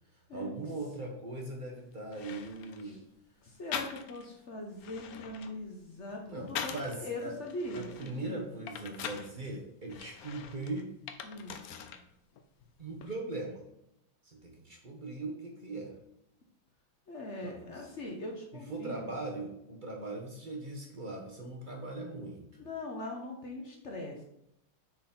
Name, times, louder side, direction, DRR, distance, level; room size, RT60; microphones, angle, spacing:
voice 1, 0.3-3.0 6.3-7.3 7.7-10.9 12.8-13.7 14.2-15.9 17.4-17.8 18.7-22.6, right 2 dB, 35° right, 0 dB, 0.8 m, -40 dB
sound 1, 1.7-1.8 2.1-2.9 3.7-4.3 4.7-7.0 7.5-9.3 9.9-12.1 12.4-13.1, left 7 dB, 80° left, 0.8 m, -42 dB
voice 2, 3.4-8.4 11.2-11.6 17.1-19.0 22.6-24.2, left 2 dB, 50° left, 0 dB, 0.9 m, -41 dB
6.6 x 4.0 x 4.2 m, 0.78 s
omnidirectional pair, 2.3 m